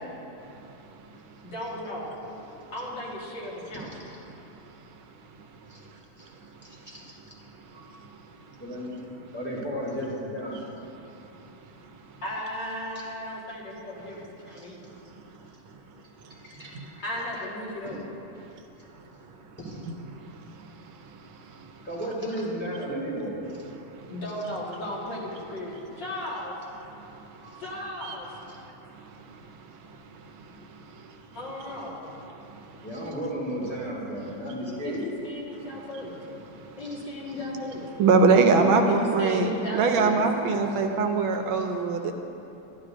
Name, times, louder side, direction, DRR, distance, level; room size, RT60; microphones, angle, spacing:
voice 1, 1.4-2.1 2.7-4.0 12.2-14.9 17.0-18.0 24.1-26.5 27.6-28.3 31.3-32.0 34.8-36.2 36.8-37.9 38.8-40.2, left 1 dB, 60° left, -6 dB, 2.3 m, -35 dB
voice 2, 6.6-7.2 7.7-7.9 8.6-9.0 9.3-10.6 14.6-14.7 16.3-16.8 19.6-19.9 21.8-23.4 27.4-27.6 32.8-35.0 38.4-38.9 41.6-41.7, equal, 5° left, -6 dB, 2.1 m, -34 dB
voice 3, 38.0-39.5 39.7-42.1, right 4 dB, 80° right, 5 dB, 1.4 m, -21 dB
12.5 x 11.5 x 2.5 m, 2.9 s
omnidirectional pair, 2.3 m